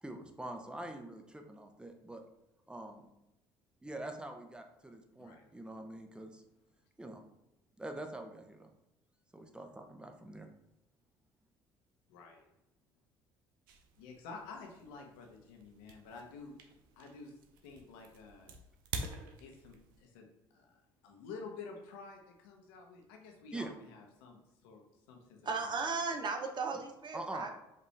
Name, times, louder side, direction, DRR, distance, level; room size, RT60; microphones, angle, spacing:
voice 1, 0.0-2.2 2.7-3.1 3.8-6.4 7.0-7.2 7.8-8.7 9.3-10.5 23.5-23.7 27.1-27.5, right 1 dB, 10° right, 4 dB, 0.8 m, -44 dB
voice 2, 5.2-5.5 12.1-12.5 14.0-16.6 17.0-18.6 19.4-20.8 21.0-24.8 25.1-26.1, left 4 dB, 80° left, 2 dB, 0.8 m, -50 dB
sound 1, 13.7-20.0, right 4 dB, 85° right, 0.5 m, -48 dB
voice 3, 25.4-27.5, right 4 dB, 45° right, 4 dB, 0.8 m, -36 dB
5.3 x 2.6 x 3.2 m, 0.90 s
hypercardioid pair, 60°, 11 cm